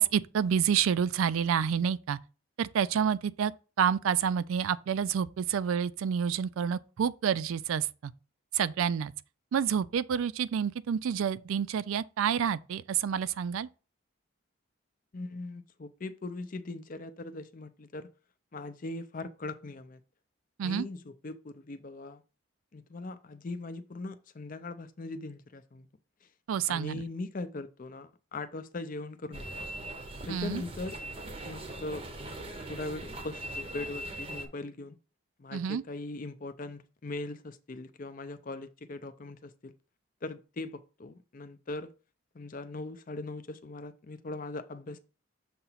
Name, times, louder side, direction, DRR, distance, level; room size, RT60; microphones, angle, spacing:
voice 1, 0.0-2.2 2.6-3.5 3.8-8.1 8.5-9.1 9.5-13.7 20.6-20.9 26.5-27.0 30.3-30.6 35.5-35.8, right 8 dB, 70° right, 0.3 m, -28 dB
voice 2, 15.1-18.1 18.5-20.0 20.6-22.2 22.7-25.9 26.7-29.6 30.3-31.0 31.5-32.1 32.7-35.0 35.4-39.7 40.2-41.9 42.3-45.0, left 2 dB, 40° left, 0.5 m, -40 dB
sound 1, 29.3-34.5, right 1 dB, 25° right, 0.7 m, -40 dB
6.9 x 2.9 x 5.6 m
head